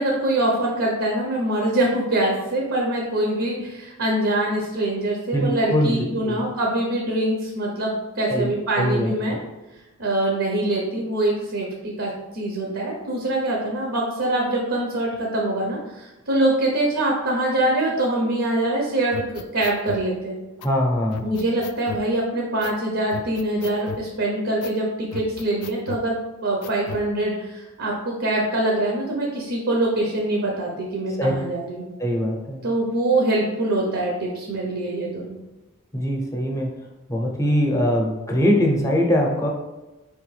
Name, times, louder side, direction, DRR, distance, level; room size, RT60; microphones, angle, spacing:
voice 1, 0.0-9.4 10.0-20.4 21.2-26.2 26.4-31.8 32.6-35.4, right 1 dB, 60° right, -1 dB, 0.8 m, -24 dB
voice 2, 5.3-6.4 8.3-8.5 8.8-9.1 20.6-21.3 31.2-31.3 32.0-32.6 35.9-36.7 37.1-39.5, equal, 15° left, 0 dB, 0.7 m, -22 dB
sound 1, 19.1-20.1 20.6-20.7 21.1-22.1 22.6-22.8 23.1-24.1 24.6-24.8 25.1-26.1 26.6-27.1, left 6 dB, 80° left, 0.3 m, -36 dB
4.6 x 3.5 x 3.2 m, 1.1 s
head